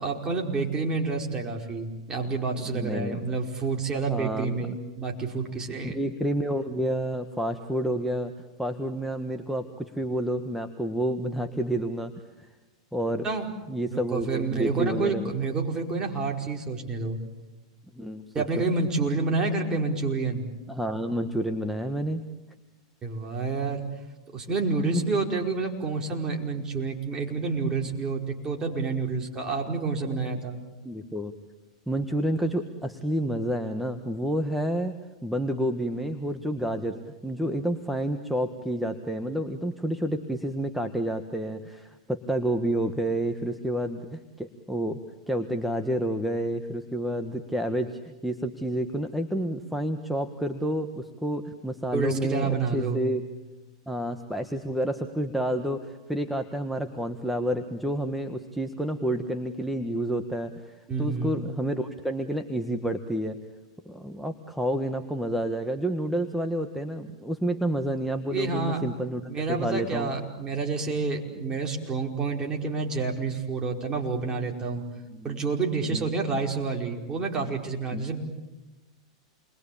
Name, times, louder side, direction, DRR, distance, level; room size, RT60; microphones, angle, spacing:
voice 1, 0.0-6.0 13.2-13.5 13.9-17.2 18.3-20.5 23.0-23.9 24.3-30.6 51.9-53.0 60.9-61.5 68.3-68.8 69.3-74.8 75.2-78.2, right 4 dB, 25° right, 1 dB, 5.0 m, -29 dB
voice 2, 2.7-3.2 4.1-4.8 5.8-8.3 8.6-12.1 12.4-12.5 12.9-13.3 13.7-15.3 17.9-18.6 20.7-22.2 24.9-25.0 30.8-31.3 31.9-45.0 45.3-53.2 53.9-63.4 63.8-70.1 75.1-75.4 75.9-76.1 77.9-78.1, right 1 dB, ahead, 6 dB, 1.5 m, -29 dB
29.0 x 22.5 x 8.6 m, 1.1 s
hypercardioid pair, 115°, 3 cm